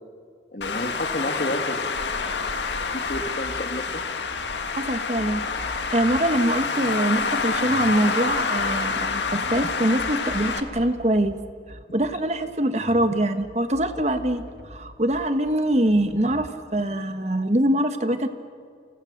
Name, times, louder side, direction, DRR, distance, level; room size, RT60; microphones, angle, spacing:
voice 1, 0.5-1.8 2.9-4.0, left 1 dB, 50° left, 6 dB, 2.2 m, -30 dB
Traffic noise roadway noise, 0.6-10.6, left 4 dB, 85° left, 1.9 m, -27 dB
sound 1, 2.8-16.5, equal, 75° right, 2.3 m, -44 dB
voice 2, 4.8-11.3 11.7-14.4 14.7-18.3, right 1 dB, 40° right, 9 dB, 1.4 m, -24 dB
30.0 x 28.5 x 6.7 m, 2.2 s
head